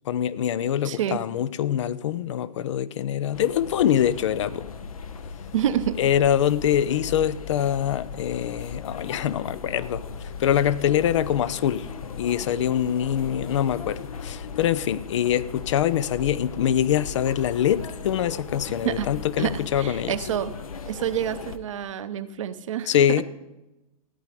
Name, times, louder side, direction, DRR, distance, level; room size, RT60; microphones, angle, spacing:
voice 1, 0.1-4.7 6.0-11.9 12.2-20.1 22.9-23.2, left 10 dB, 50° left, 0.5 m, -24 dB
voice 2, 0.8-1.2 5.5-6.0 18.8-19.1 19.4-20.5 20.9-23.2, right 10 dB, 55° right, 0.8 m, -28 dB
sound 1, 3.3-21.6, left 5 dB, 65° left, 1.0 m, -37 dB
14.0 x 9.3 x 5.0 m
figure-of-eight pair, 105°, 19 cm